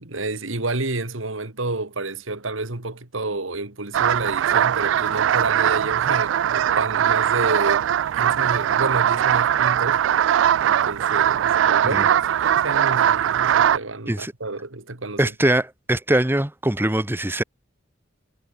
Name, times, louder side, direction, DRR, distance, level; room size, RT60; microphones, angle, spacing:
voice 1, 0.0-7.9 8.1-10.0 10.6-15.2, right 2 dB, 90° right, 2.6 m, -29 dB
sound 1, 3.9-13.8, right 10 dB, 70° right, 0.3 m, -20 dB
voice 2, 15.2-17.4, right 1 dB, 10° right, 1.2 m, -22 dB
head